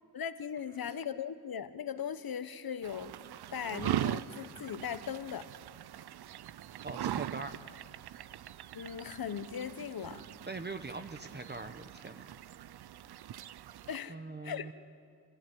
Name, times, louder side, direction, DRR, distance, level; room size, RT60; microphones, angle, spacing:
voice 1, 0.1-3.1 3.5-5.5 8.7-10.3 13.9-14.1 14.4-14.7, left 8 dB, 70° left, 12 dB, 1.1 m, -38 dB
sound 1, 2.8-14.0, right 12 dB, 85° right, 0.5 m, -41 dB
voice 2, 6.8-7.5 10.5-12.3 14.1-14.7, right 3 dB, 25° right, 7 dB, 0.9 m, -42 dB
27.0 x 15.0 x 9.3 m, 2.3 s
wide cardioid pair, 95°, 38 cm